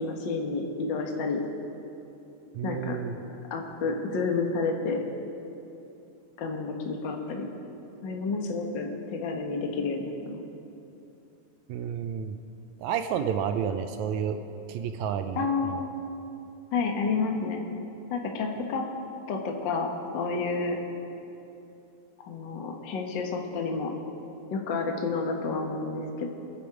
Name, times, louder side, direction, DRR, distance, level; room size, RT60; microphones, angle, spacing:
voice 1, 0.0-1.4 2.6-3.0 3.5-5.0 6.4-7.5 8.0-10.4 15.4-15.9 16.7-17.6 18.1-18.8 19.3-19.9 20.1-20.8 22.2-23.9 24.5-26.3, left 4 dB, 50° left, 2 dB, 1.5 m, -30 dB
voice 2, 2.5-3.1 11.7-12.4 12.8-14.4 14.7-15.8, right 8 dB, 75° right, 8 dB, 1.8 m, -30 dB
25.5 x 8.7 x 4.9 m, 2.8 s
omnidirectional pair, 3.6 m